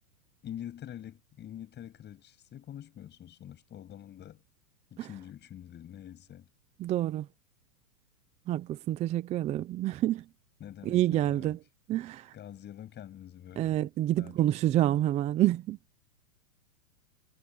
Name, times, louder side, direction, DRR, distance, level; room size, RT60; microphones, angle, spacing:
voice 1, 0.4-4.4 4.9-6.5 10.6-11.6 12.3-13.8 14.2-14.4, left 10 dB, 25° left, 7.8 m, -45 dB
voice 2, 6.8-7.3 8.5-10.2 10.8-11.6 11.9-12.3 13.6-15.8, right 13 dB, 15° right, 0.6 m, -28 dB
hypercardioid pair, 140°, 45 cm